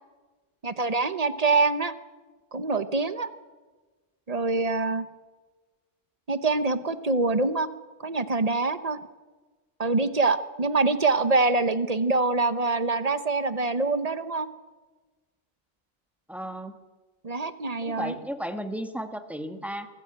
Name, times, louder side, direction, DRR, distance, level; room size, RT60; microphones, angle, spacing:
voice 1, 0.6-1.9 2.5-3.3 4.3-5.1 6.3-7.7 8.0-9.0 9.8-14.5 17.2-18.2, right 3 dB, 40° right, 12 dB, 1.1 m, -25 dB
voice 2, 16.3-16.8 17.8-19.9, equal, ahead, 7 dB, 1.4 m, -34 dB
24.0 x 15.0 x 8.9 m, 1.3 s
omnidirectional pair, 1.0 m